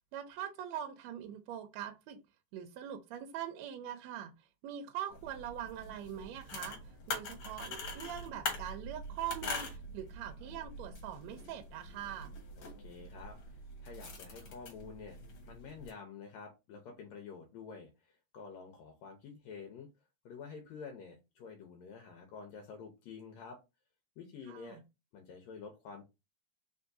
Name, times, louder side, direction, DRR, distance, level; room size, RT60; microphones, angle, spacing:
voice 1, 0.1-2.2 2.5-4.3 4.6-6.8 7.1-12.3 24.5-24.8, right 10 dB, 75° right, 1.8 m, -42 dB
sound 1, 5.1-15.9, left 3 dB, 55° left, 1.9 m, -44 dB
voice 2, 12.6-15.2 15.5-19.9 20.3-23.6 24.2-24.8 25.1-26.0, left 5 dB, 75° left, 2.0 m, -49 dB
4.5 x 3.5 x 2.6 m
omnidirectional pair, 3.4 m